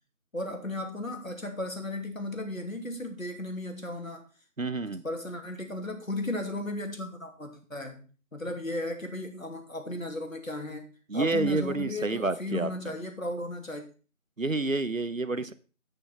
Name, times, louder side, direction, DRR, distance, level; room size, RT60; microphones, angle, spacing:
voice 1, 0.3-4.2 5.0-10.9 11.1-13.8, left 1 dB, 70° left, 4 dB, 2.9 m, -35 dB
voice 2, 4.6-5.0 11.1-13.0 14.4-15.5, right 3 dB, 70° right, 13 dB, 1.1 m, -29 dB
9.2 x 9.0 x 4.4 m, 0.37 s
figure-of-eight pair, 175°, 42 cm